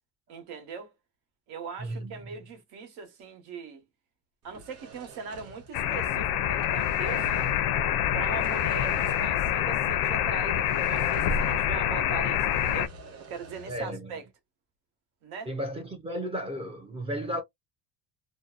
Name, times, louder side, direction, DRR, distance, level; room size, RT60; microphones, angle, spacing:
voice 1, 0.3-0.9 1.5-3.8 4.4-7.5 8.1-14.2 15.2-15.5, right 5 dB, 85° right, 1.1 m, -40 dB
voice 2, 1.8-2.1 13.7-14.1 15.5-17.4, equal, 15° right, 0.4 m, -34 dB
sound 1, 4.4-6.2 6.5-7.7 8.2-9.6 9.9-10.0 10.5-11.8 12.1-13.9, right 2 dB, 40° right, 0.8 m, -47 dB
sound 2, 5.7-12.9, left 10 dB, 70° left, 0.5 m, -26 dB
2.6 x 2.0 x 2.3 m
cardioid pair, 165°, 37 cm